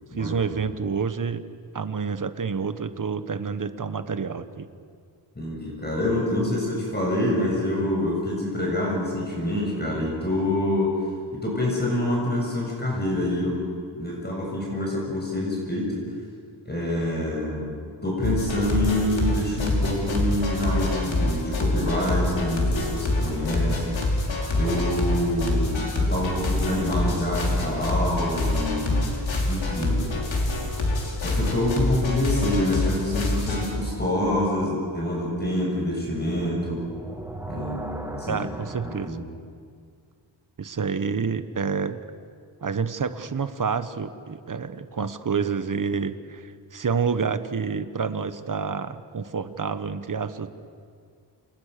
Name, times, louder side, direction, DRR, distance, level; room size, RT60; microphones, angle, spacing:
voice 1, 0.1-1.4 1.7-4.7 38.3-39.3 40.6-42.0 42.6-50.5, right 5 dB, 45° right, 11 dB, 1.3 m, -28 dB
voice 2, 5.3-10.9 11.3-13.6 14.0-16.0 16.6-17.7 18.0-24.2 24.5-29.1 29.5-30.0 31.2-36.8 37.5-38.4 38.8-39.2, left 1 dB, 20° left, -3 dB, 6.8 m, -26 dB
sound 1, 18.2-33.7, left 2 dB, 75° left, 5.5 m, -26 dB
sound 2, 30.4-31.2 34.8-39.1, right 1 dB, 5° right, 2.3 m, -40 dB
29.5 x 27.5 x 6.8 m, 2.2 s
wide cardioid pair, 145°, 46 cm